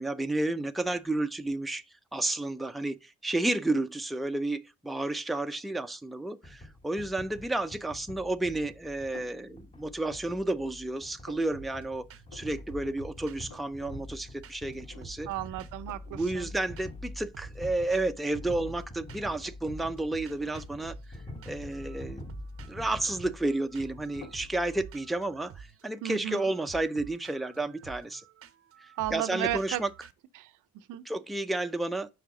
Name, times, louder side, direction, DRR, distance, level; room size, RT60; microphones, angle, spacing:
voice 1, 0.0-1.8 2.1-12.1 12.3-15.3 16.1-21.2 21.5-22.3 22.7-28.2 28.8-29.9 31.1-32.1, right 2 dB, ahead, 0.4 m, -31 dB
sound 1, 6.4-24.8, left 2 dB, 20° left, 1.1 m, -46 dB
sound 2, 9.1-9.5 10.0-10.6 10.9-11.5 12.3-12.7 13.0-13.1 13.3-13.9 14.2-14.3 14.9-15.4 15.9-16.1 17.0-17.1 17.6-18.9 19.3-19.6 20.3-20.7 21.7-22.3 22.7-23.7 24.2-24.5, left 5 dB, 85° left, 1.5 m, -52 dB
sound 3, 11.5-11.8 12.1-12.4 12.7-14.7 15.0-16.5 16.8-17.1 17.3-19.4 19.7-30.1, right 7 dB, 50° right, 0.6 m, -50 dB
voice 2, 15.3-16.5 26.0-26.4 29.0-29.8 30.3-31.0, right 14 dB, 90° right, 0.6 m, -34 dB
5.7 x 4.7 x 4.8 m
cardioid pair, 90°, 30 cm